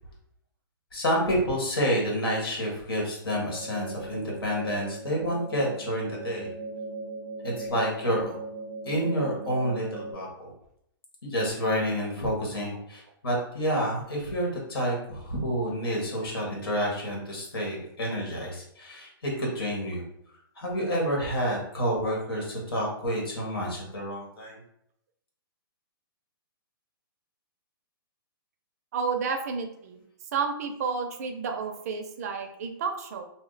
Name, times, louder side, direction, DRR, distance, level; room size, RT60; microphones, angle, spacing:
voice 1, 0.9-6.5 7.4-8.4 8.8-10.5 11.2-20.0 20.6-24.6, equal, 90° left, -2 dB, 1.4 m, -29 dB
sound 1, 3.4-10.1, right 3 dB, 25° left, 0.8 m, -38 dB
voice 2, 28.9-30.0 30.3-33.2, right 5 dB, 45° right, 5 dB, 0.4 m, -31 dB
2.7 x 2.1 x 3.9 m, 0.74 s
hypercardioid pair, 160°, 12 cm